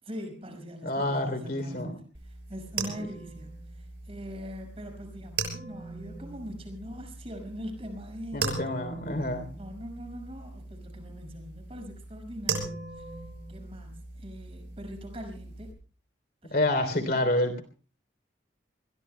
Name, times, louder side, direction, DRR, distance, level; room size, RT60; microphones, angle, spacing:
voice 1, 0.0-8.6 9.1-9.3 9.6-13.1 13.5-15.7 16.4-17.3, equal, 30° right, 4 dB, 5.9 m, -42 dB
voice 2, 0.8-1.9 8.3-9.5 16.5-17.6, left 1 dB, 50° left, 8 dB, 3.3 m, -28 dB
sound 1, 2.1-15.7, right 4 dB, 60° right, 6.4 m, -39 dB
27.5 x 21.5 x 2.2 m, 0.37 s
head